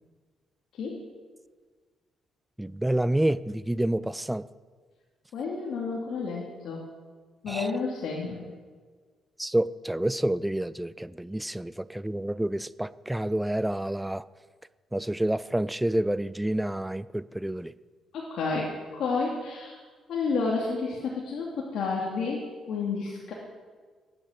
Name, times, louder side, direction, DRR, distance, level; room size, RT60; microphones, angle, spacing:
voice 1, 2.6-4.5 7.5-7.7 9.4-14.2 14.9-17.7, right 1 dB, 5° right, 17 dB, 0.5 m, -28 dB
voice 2, 5.3-6.8 7.4-8.4 18.1-18.7 18.9-19.8 20.1-23.3, left 4 dB, 70° left, -3 dB, 2.9 m, -30 dB
20.5 x 8.7 x 8.1 m, 1.5 s
cardioid pair, 90°, 0 cm